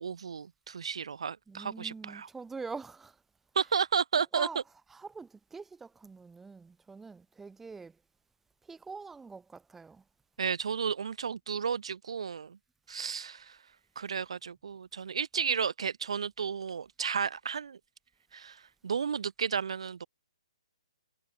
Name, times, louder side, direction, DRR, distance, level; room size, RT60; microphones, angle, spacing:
voice 1, 0.0-2.3 3.5-4.5 10.4-12.6 12.9-13.6 14.0-17.8 18.3-20.1, right 6 dB, 70° right, 1.2 m, -33 dB
voice 2, 1.5-3.2 4.4-4.6 4.9-8.0 8.6-10.0, right 4 dB, 5° right, 1.7 m, -44 dB
hypercardioid pair, 135°, 3 cm